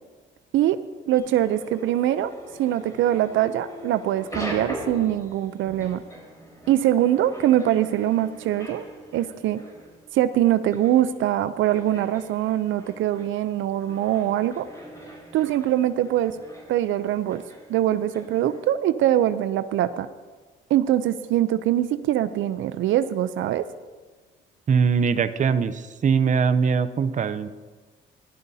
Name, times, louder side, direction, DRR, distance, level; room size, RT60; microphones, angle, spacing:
voice 1, 1.1-2.3 2.6-6.0 6.7-8.8 9.1-9.6 10.1-14.7 15.3-16.4 16.7-17.4 17.7-20.1 20.7-23.6, right 12 dB, 80° right, 13 dB, 0.5 m, -23 dB
sound 1, 1.2-18.7, equal, 15° left, 4.0 m, -42 dB
voice 2, 24.7-27.5, right 6 dB, 40° right, 12 dB, 0.6 m, -21 dB
16.5 x 12.0 x 2.7 m, 1.4 s
cardioid pair, 90°, 20 cm